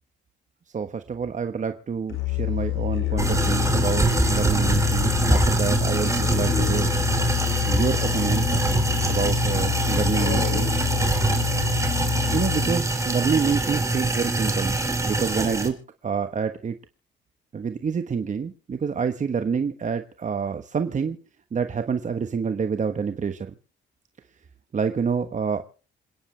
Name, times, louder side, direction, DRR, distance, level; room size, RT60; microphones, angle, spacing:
voice 1, 0.7-6.9 7.7-8.6 9.1-10.7 12.3-14.8 15.0-15.8 16.0-16.8 17.5-21.2 21.5-23.5 24.7-25.6, right 6 dB, 40° right, 8 dB, 1.3 m, -27 dB
Musical instrument, 2.1-12.9, left 18 dB, 75° left, 5.9 m, -27 dB
sound 1, 3.2-15.7, right 2 dB, 15° right, 3.5 m, -24 dB
28.0 x 9.9 x 3.4 m, 0.40 s
cardioid pair, 90°, 20 cm